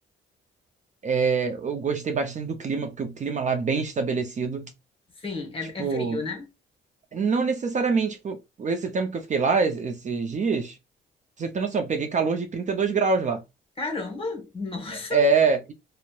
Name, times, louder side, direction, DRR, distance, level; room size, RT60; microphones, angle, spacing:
voice 1, 1.0-4.7 5.8-6.2 7.1-10.7 11.4-13.4 15.1-15.7, right 4 dB, 40° right, 0.5 m, -25 dB
voice 2, 5.2-6.5 13.8-15.3, left 3 dB, 30° left, 0.9 m, -32 dB
2.7 x 2.1 x 2.2 m
cardioid pair, 90°, 20 cm